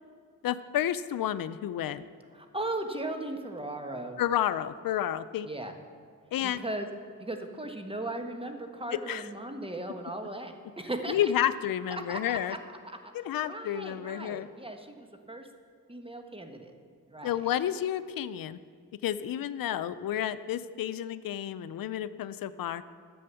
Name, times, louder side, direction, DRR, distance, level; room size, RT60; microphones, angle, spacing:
voice 1, 0.4-2.1 4.2-5.5 6.3-6.6 9.1-9.3 11.1-12.6 13.1-14.5 17.2-18.6 19.0-22.8, left 11 dB, 85° left, 14 dB, 0.5 m, -30 dB
voice 2, 2.3-4.2 5.4-5.7 6.4-6.9 7.2-11.3 12.1-12.6 12.8-13.0 13.4-15.5 15.9-16.7 17.1-17.4, right 1 dB, 15° right, 5 dB, 1.3 m, -37 dB
10.5 x 7.8 x 6.9 m, 2.1 s
cardioid pair, 60°, 33 cm